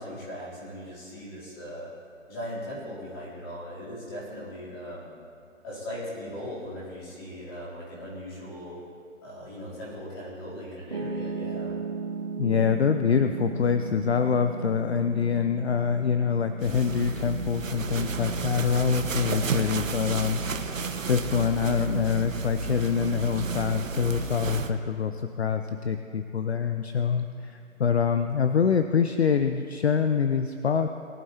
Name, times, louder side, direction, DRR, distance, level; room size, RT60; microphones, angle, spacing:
voice 1, 0.0-1.9 2.3-5.1 5.6-8.8 9.2-11.7, equal, 20° left, -8 dB, 3.2 m, -39 dB
Piano, 10.9-23.1, right 5 dB, 25° right, 0.7 m, -38 dB
voice 2, 12.4-30.9, left 6 dB, 55° left, 8 dB, 0.6 m, -25 dB
sound 1, 16.6-24.7, right 5 dB, 75° right, 1.1 m, -32 dB
21.0 x 11.0 x 2.9 m, 2.4 s
hypercardioid pair, 175°, 39 cm